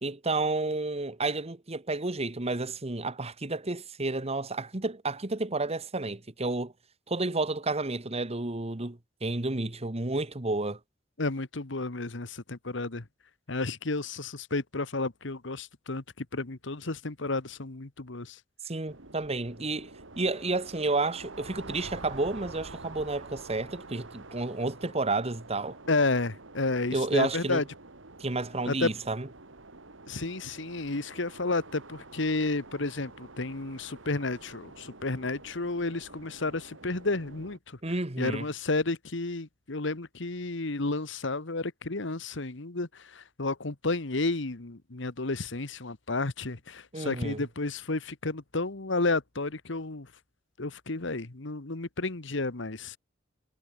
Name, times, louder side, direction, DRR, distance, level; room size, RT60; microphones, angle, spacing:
voice 1, 0.0-6.7 7.1-10.8 18.6-19.9 20.2-25.8 26.9-27.6 28.2-29.3 37.8-38.4 46.9-47.4, right 2 dB, 35° right, 1.5 m, -31 dB
voice 2, 11.2-13.0 13.5-18.4 25.9-27.6 28.6-28.9 30.1-37.8 38.2-50.1 50.6-53.0, left 3 dB, 70° left, 1.5 m, -31 dB
sound 1, 18.9-37.6, right 3 dB, 80° right, 2.7 m, -48 dB
head